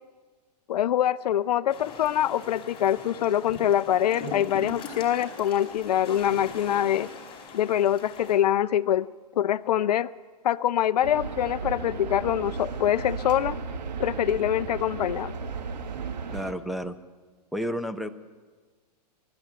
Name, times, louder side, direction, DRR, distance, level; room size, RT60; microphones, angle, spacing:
voice 1, 0.7-7.1 7.5-9.1 9.4-10.1 10.4-13.6 14.0-15.3, left 11 dB, 70° left, 16 dB, 0.6 m, -24 dB
sound 1, 1.7-8.4, left 4 dB, 25° left, 4.8 m, -41 dB
sound 2, 11.0-16.5, right 5 dB, 85° right, 2.0 m, -35 dB
voice 2, 16.3-17.0 17.5-18.1, equal, ahead, 6 dB, 0.9 m, -31 dB
24.0 x 12.5 x 9.2 m, 1.4 s
hypercardioid pair, 130°, 21 cm